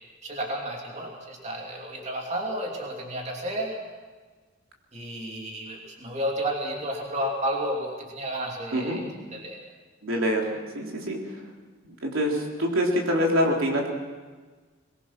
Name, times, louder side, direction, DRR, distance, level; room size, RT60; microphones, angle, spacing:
voice 1, 0.2-3.8 4.9-9.0 9.3-9.6, right 1 dB, 35° right, 0 dB, 3.0 m, -31 dB
voice 2, 8.7-9.0 10.0-11.2 11.8-13.9, equal, 80° right, 0 dB, 3.6 m, -25 dB
22.5 x 21.0 x 6.1 m, 1.4 s
head